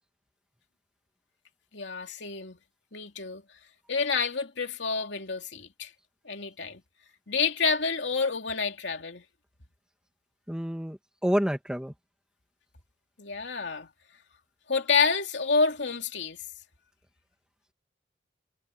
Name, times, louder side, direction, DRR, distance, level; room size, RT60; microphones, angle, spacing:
voice 1, 1.7-2.6 2.9-3.4 3.9-5.9 6.2-6.8 7.3-9.2 13.2-13.9 14.7-16.4, left 5 dB, 70° left, 3.0 m, -28 dB
voice 2, 10.5-11.9, equal, 5° right, 2.0 m, -28 dB
head